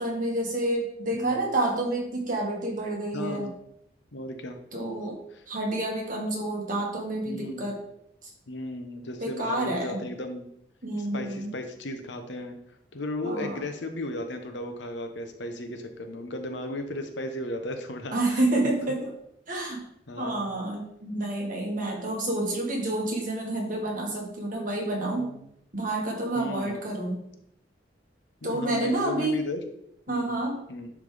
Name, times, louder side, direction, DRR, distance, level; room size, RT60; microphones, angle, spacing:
voice 1, 0.0-3.5 4.7-5.2 5.5-7.8 8.2-8.3 9.2-10.0 10.8-11.5 13.2-13.6 18.1-19.1 19.5-19.8 20.2-25.3 25.7-27.2 28.4-29.4 30.1-30.6, right 1 dB, 45° right, -1 dB, 1.7 m, -29 dB
voice 2, 3.1-3.5 4.1-4.6 7.3-7.7 8.5-10.5 11.0-12.6 12.9-18.4 20.1-20.5 25.2-25.5 26.3-26.8 28.4-29.6 30.1-30.4 30.7-30.9, left 1 dB, 75° left, 6 dB, 0.9 m, -35 dB
10.5 x 3.5 x 3.4 m, 0.76 s
head